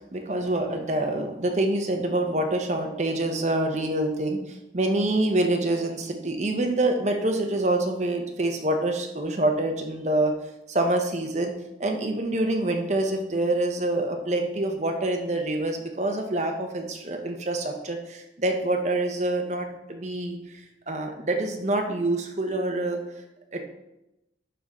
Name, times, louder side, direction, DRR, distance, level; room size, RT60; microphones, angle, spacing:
voice 1, 0.1-10.3 10.7-11.5 11.8-20.4 20.9-23.0 23.5-23.6, right 2 dB, 40° right, 3 dB, 0.9 m, -26 dB
11.0 x 3.8 x 4.2 m, 0.91 s
head